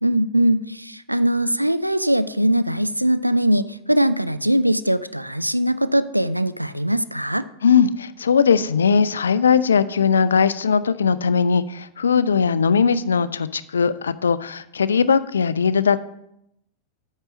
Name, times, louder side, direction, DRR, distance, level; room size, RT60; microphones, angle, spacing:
voice 1, 0.0-7.4, right 1 dB, 90° right, 14 dB, 0.4 m, -21 dB
voice 2, 7.6-16.0, left 6 dB, 70° left, 16 dB, 0.4 m, -19 dB
8.7 x 5.4 x 6.1 m, 0.77 s
figure-of-eight pair, 90°, 0 cm